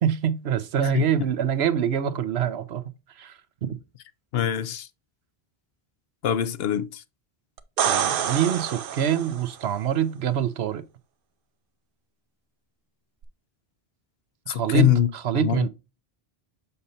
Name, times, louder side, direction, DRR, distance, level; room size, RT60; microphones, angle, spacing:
voice 1, 0.0-2.8 3.2-3.8 7.9-10.8 14.5-15.7, right 9 dB, 85° right, 1.0 m, -25 dB
voice 2, 4.3-4.9 6.2-7.0 14.5-15.1 15.3-15.7, left 11 dB, 75° left, 0.8 m, -23 dB
sound 1, 7.6-9.5 13.2-13.3, right 8 dB, 65° right, 0.8 m, -27 dB
6.8 x 5.3 x 2.7 m
omnidirectional pair, 1.0 m